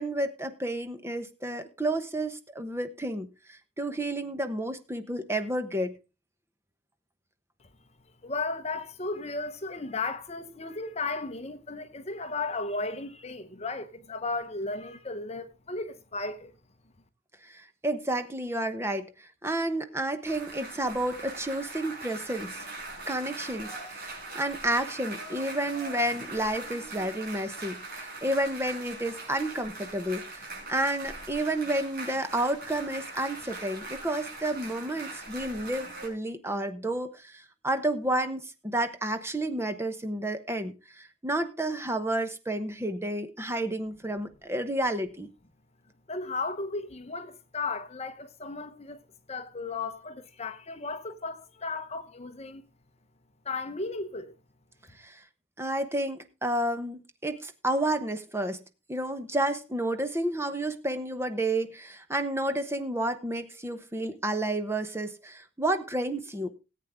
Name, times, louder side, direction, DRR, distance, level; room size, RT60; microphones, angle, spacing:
voice 1, 0.0-5.9 17.4-22.7 23.1-45.3 55.0-55.2 55.6-58.6 58.9-66.5, right 1 dB, 15° right, 1.0 m, -31 dB
voice 2, 8.2-16.5 46.1-49.0 49.3-52.6 53.4-54.3, left 3 dB, 30° left, 0.9 m, -35 dB
sound 1, 20.3-36.1, right 2 dB, 45° right, 5.7 m, -41 dB
18.0 x 8.5 x 3.6 m
head